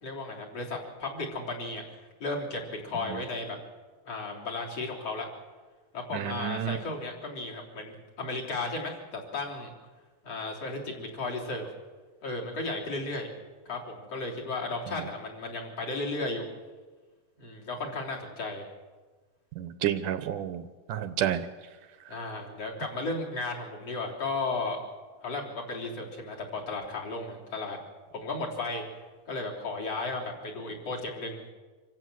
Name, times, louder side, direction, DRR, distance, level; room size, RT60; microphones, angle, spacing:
voice 1, 0.0-1.8 2.2-3.6 4.1-5.3 5.9-9.7 10.2-11.7 12.2-13.3 13.7-16.5 17.4-18.7 22.1-24.8 25.2-27.8 28.2-28.8 29.3-31.4, left 3 dB, 45° left, -2 dB, 4.4 m, -34 dB
voice 2, 6.1-6.8 19.6-20.6 20.9-21.5, right 11 dB, 75° right, 11 dB, 2.2 m, -30 dB
26.0 x 16.0 x 7.7 m, 1.4 s
omnidirectional pair, 4.1 m